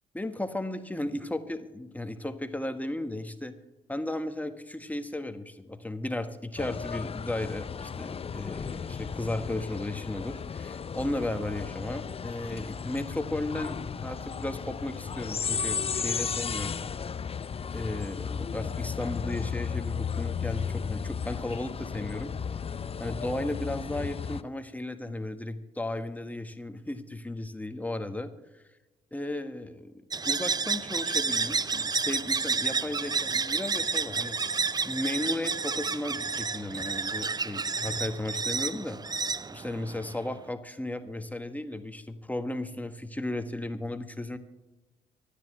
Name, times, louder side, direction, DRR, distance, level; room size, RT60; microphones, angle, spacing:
voice 1, 0.1-3.5 3.9-13.8 14.0-16.7 17.7-22.3 23.0-28.6 29.1-34.4 34.8-39.0 39.5-44.4, left 1 dB, 10° left, 8 dB, 1.6 m, -35 dB
sound 1, 6.6-24.4, left 6 dB, 30° left, 0.6 m, -34 dB
sound 2, 30.1-40.3, right 4 dB, 20° right, 0.5 m, -30 dB
25.0 x 10.0 x 3.3 m, 1.1 s
hypercardioid pair, 45°, 19 cm